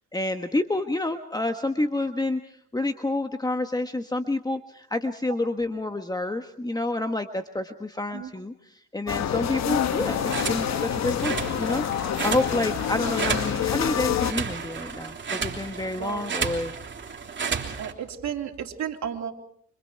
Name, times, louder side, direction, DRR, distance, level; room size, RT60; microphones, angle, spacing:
voice 1, 0.1-16.7, left 2 dB, 15° left, 7 dB, 1.4 m, -29 dB
sound 1, 9.1-14.3, left 9 dB, 60° left, 1.3 m, -27 dB
sound 2, 9.8-17.9, right 6 dB, 40° right, 3.3 m, -33 dB
voice 2, 17.8-19.3, right 8 dB, 65° right, 2 dB, 3.5 m, -33 dB
29.5 x 26.0 x 4.7 m, 0.65 s
cardioid pair, 90°, 30 cm